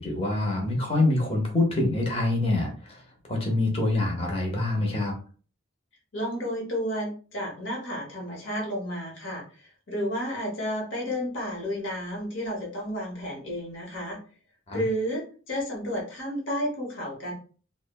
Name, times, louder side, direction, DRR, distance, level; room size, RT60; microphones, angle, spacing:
voice 1, 0.0-3.0 3.3-5.2 14.7-14.8, left 2 dB, 30° left, 0 dB, 0.7 m, -25 dB
voice 2, 6.1-14.2 14.7-17.3, equal, 70° left, -2 dB, 0.9 m, -31 dB
3.2 x 2.0 x 2.2 m, 0.39 s
head